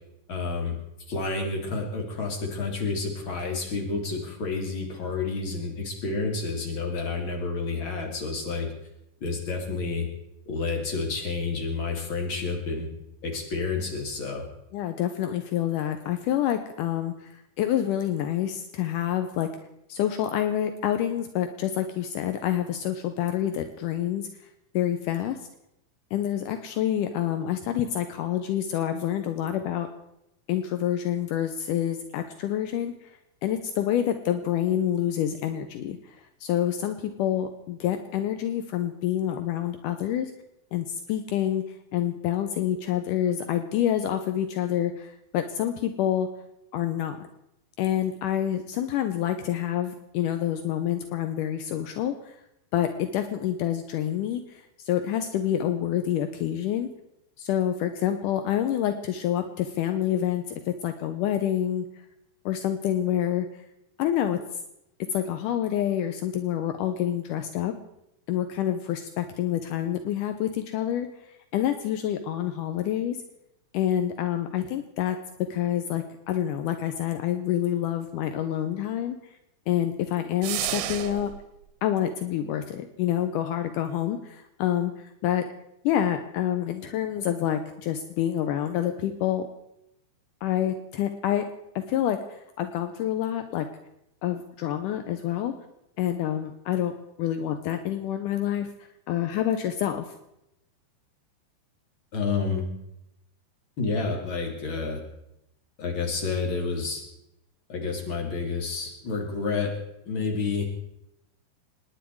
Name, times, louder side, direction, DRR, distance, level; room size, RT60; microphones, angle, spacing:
voice 1, 0.3-0.8 1.1-8.7 9.2-10.1 10.5-12.9 13.2-14.5 102.1-102.7 103.8-105.0 105.8-107.0 107.7-109.7 110.1-110.6, left 4 dB, 35° left, 1 dB, 3.1 m, -29 dB
voice 2, 14.7-19.5 19.9-24.3 24.7-25.4 26.1-29.9 30.5-33.1 33.4-40.3 40.7-41.7 41.9-46.3 46.7-47.2 47.8-52.4 52.7-56.9 57.4-61.9 62.5-63.5 64.0-64.4 65.1-67.7 68.3-71.1 71.5-73.2 73.7-79.2 79.7-81.3 81.8-85.5 85.8-89.5 90.4-91.5 91.8-93.7 94.2-95.6 96.0-96.9 97.2-98.7 99.1-100.1, left 11 dB, 80° left, 8 dB, 1.9 m, -27 dB
sound 1, 80.4-81.4, right 13 dB, 90° right, 3.1 m, -31 dB
27.0 x 10.5 x 4.7 m, 0.84 s
omnidirectional pair, 4.7 m